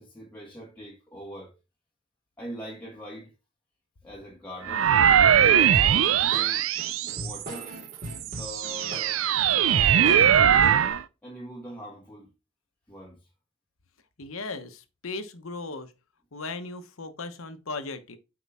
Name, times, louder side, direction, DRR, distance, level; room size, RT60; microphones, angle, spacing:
voice 1, 0.0-1.5 2.4-3.3 4.0-4.9 5.5-6.7 7.0-7.7 8.3-10.3 11.2-12.3 12.9-13.2, equal, 10° left, 1.3 m, -42 dB
sound 1, 4.7-7.6 8.2-11.0, right 9 dB, 75° right, 0.5 m, -21 dB
sound 2, 5.7-10.9, equal, 40° right, 3.8 m, -40 dB
voice 2, 14.2-15.9 16.3-18.2, left 3 dB, 85° left, 1.0 m, -37 dB
8.4 x 4.8 x 3.5 m
head